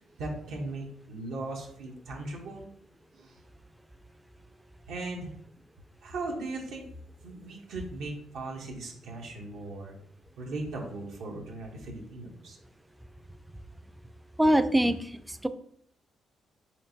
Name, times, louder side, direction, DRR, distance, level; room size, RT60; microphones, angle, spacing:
voice 1, 0.2-2.7 3.1-3.4 4.9-5.3 6.0-6.8 7.2-9.9 10.4-12.6, right 2 dB, 80° right, -1 dB, 0.8 m, -38 dB
voice 2, 14.4-15.5, right 1 dB, 10° right, 11 dB, 0.3 m, -24 dB
4.4 x 3.4 x 2.7 m, 0.66 s
cardioid pair, 90°, 0 cm